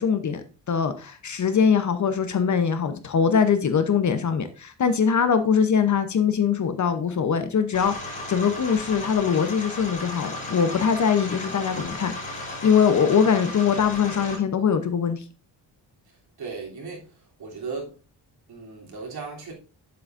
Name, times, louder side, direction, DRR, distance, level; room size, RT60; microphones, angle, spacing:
voice 1, 0.0-12.1 12.6-15.2, left 6 dB, 40° left, 0.8 m, -22 dB
sound 1, 7.7-14.3, left 2 dB, 20° left, 4.7 m, -35 dB
voice 2, 16.4-17.1 17.4-17.9 18.5-19.5, right 4 dB, 60° right, 3.3 m, -36 dB
8.7 x 7.9 x 2.6 m
wide cardioid pair, 155°, 43 cm